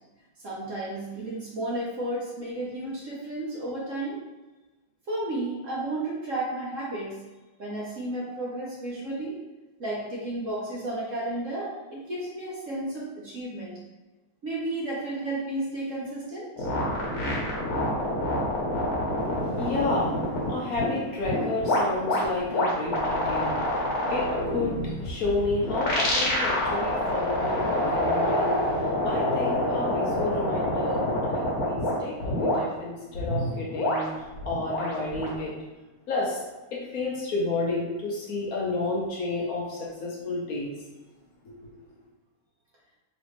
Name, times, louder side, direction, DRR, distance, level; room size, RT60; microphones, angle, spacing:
voice 1, 0.4-4.2 5.1-7.2 7.6-9.4 9.8-13.7 14.4-16.7, right 1 dB, 55° right, -6 dB, 0.9 m, -32 dB
sound 1, 16.6-20.8 21.2-31.9 32.2-32.6 33.1-35.4, left 1 dB, 50° left, 1.3 m, -27 dB
voice 2, 19.1-35.5 36.1-36.4 36.7-40.7 41.5-41.6, left 2 dB, 70° left, -4 dB, 0.8 m, -31 dB
4.0 x 3.1 x 3.1 m, 1.2 s
omnidirectional pair, 2.3 m